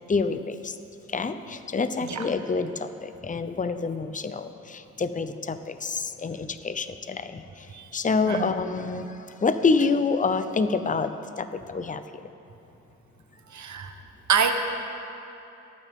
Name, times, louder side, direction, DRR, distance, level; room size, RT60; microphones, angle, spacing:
voice 1, 0.1-0.8 1.1-7.7 7.9-11.1 11.4-12.0, left 4 dB, 25° left, 10 dB, 0.7 m, -27 dB
voice 2, 13.5-13.9 14.3-14.5, right 7 dB, 70° right, 6 dB, 1.1 m, -25 dB
26.0 x 9.2 x 3.7 m, 2.9 s
cardioid pair, 70°, 29 cm